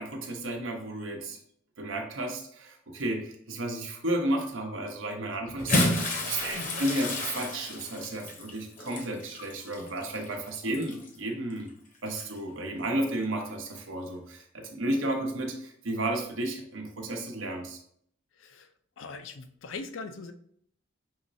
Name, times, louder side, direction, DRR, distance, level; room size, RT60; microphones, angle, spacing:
voice 1, 0.0-1.4 1.8-11.7 12.0-17.8, right 1 dB, 75° right, 3 dB, 0.9 m, -33 dB
Bathtub (filling or washing) / Splash splatter, 5.5-11.2 12.1-12.2 13.7-13.8, left 1 dB, 40° left, 0.8 m, -31 dB
voice 2, 18.4-18.7 19.0-20.3, left 4 dB, 75° left, 9 dB, 0.5 m, -41 dB
5.6 x 3.0 x 2.6 m, 0.65 s
head